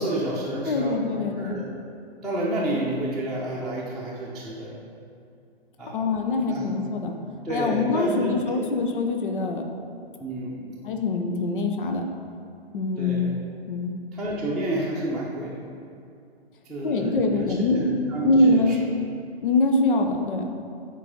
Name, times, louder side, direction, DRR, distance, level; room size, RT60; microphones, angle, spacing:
voice 1, 0.0-1.0 1.3-1.6 2.2-4.8 5.8-6.0 6.5-6.7 7.4-8.3 10.2-10.7 13.0-13.4 14.1-15.6 16.6-18.8, right 1 dB, ahead, -9 dB, 0.9 m, -30 dB
voice 2, 0.6-1.6 5.9-7.2 7.5-9.7 10.8-12.0 12.7-13.3 13.7-13.9 16.8-17.8 18.2-18.7 19.4-20.5, left 2 dB, 55° left, 4 dB, 1.0 m, -23 dB
9.8 x 4.8 x 5.2 m, 2.5 s
figure-of-eight pair, 115°, 31 cm